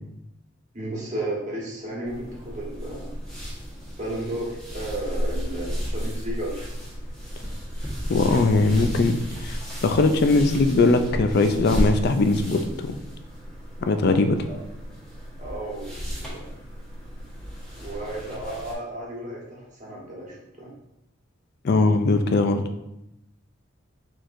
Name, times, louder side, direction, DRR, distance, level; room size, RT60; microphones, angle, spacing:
voice 1, 0.7-3.1 4.0-6.6 14.5-14.6 15.4-16.5 17.7-20.7, right 1 dB, 35° right, -4 dB, 1.2 m, -33 dB
sound 1, 2.0-18.7, equal, 5° left, 1.2 m, -33 dB
voice 2, 8.1-13.0 13.9-14.4 21.6-22.6, left 3 dB, 50° left, 8 dB, 0.4 m, -20 dB
4.4 x 4.4 x 2.6 m, 0.87 s
head